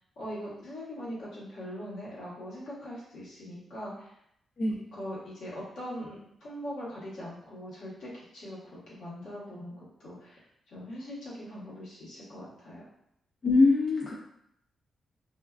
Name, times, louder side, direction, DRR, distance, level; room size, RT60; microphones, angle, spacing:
voice 1, 0.2-4.1 4.9-6.1 6.4-10.4 10.7-12.8, equal, 80° left, -8 dB, 1.0 m, -41 dB
voice 2, 13.4-14.1, left 3 dB, 55° left, -4 dB, 0.4 m, -23 dB
2.4 x 2.2 x 2.3 m, 0.75 s
supercardioid pair, 60°, 0 cm